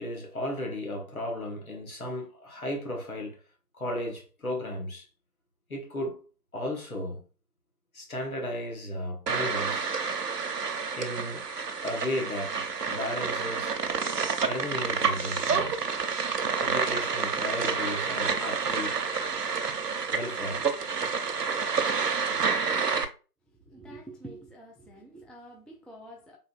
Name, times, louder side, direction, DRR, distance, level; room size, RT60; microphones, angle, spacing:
voice 1, 0.0-3.4 3.7-5.1 5.7-6.2 6.5-7.2 7.9-9.9 10.9-11.4 11.8-13.7 14.4-15.7 16.6-19.0 20.1-20.6 22.2-22.5, left 1 dB, 60° left, 1.0 m, -35 dB
sound 1, 9.3-23.0, right 5 dB, 75° right, 0.6 m, -29 dB
voice 2, 23.7-26.4, right 1 dB, ahead, 0.4 m, -47 dB
3.7 x 2.2 x 2.3 m
figure-of-eight pair, 170°, 49 cm